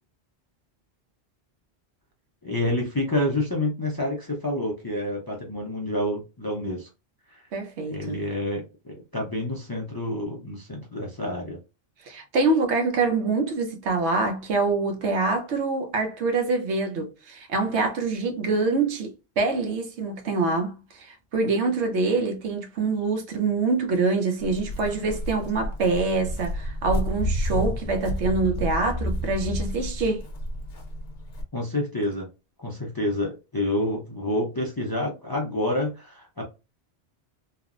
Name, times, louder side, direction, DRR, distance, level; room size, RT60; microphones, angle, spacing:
voice 1, 2.4-6.9 7.3-7.4 7.8-11.6 31.5-32.3 32.6-36.4, left 1 dB, 30° left, 0.4 m, -28 dB
voice 2, 7.5-8.2 12.1-30.2, right 3 dB, 80° right, 1.0 m, -25 dB
Walk footsteps, 24.4-31.4, equal, 65° left, 1.0 m, -30 dB
3.0 x 2.0 x 2.4 m
omnidirectional pair, 1.1 m